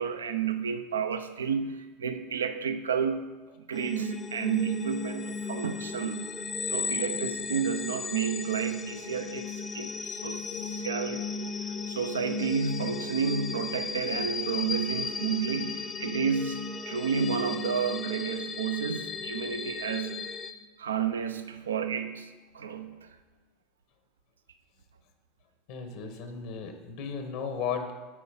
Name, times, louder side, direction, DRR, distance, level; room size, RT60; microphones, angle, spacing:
voice 1, 0.0-3.2 3.7-11.3 11.6-20.3 20.8-23.1, right 6 dB, 85° right, 9 dB, 0.4 m, -31 dB
sound 1, 3.7-20.5, left 4 dB, 25° left, 0.7 m, -35 dB
voice 2, 25.7-27.9, left 6 dB, 65° left, 6 dB, 1.2 m, -35 dB
8.1 x 4.5 x 5.5 m, 1.2 s
hypercardioid pair, 85°, 0 cm